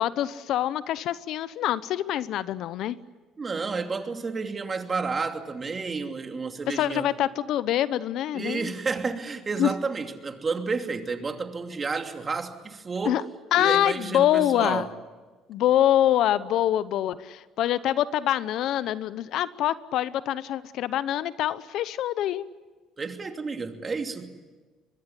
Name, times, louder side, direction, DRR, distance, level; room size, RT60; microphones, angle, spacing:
voice 1, 0.0-3.0 6.7-8.7 9.6-9.7 13.0-13.2 13.5-14.9 15.5-22.4, left 12 dB, 70° left, 16 dB, 0.9 m, -25 dB
voice 2, 3.4-7.0 8.3-13.2 13.6-14.9 23.0-24.3, right 4 dB, 30° right, 5 dB, 2.8 m, -31 dB
23.5 x 22.0 x 9.9 m, 1.3 s
supercardioid pair, 80°, 0 cm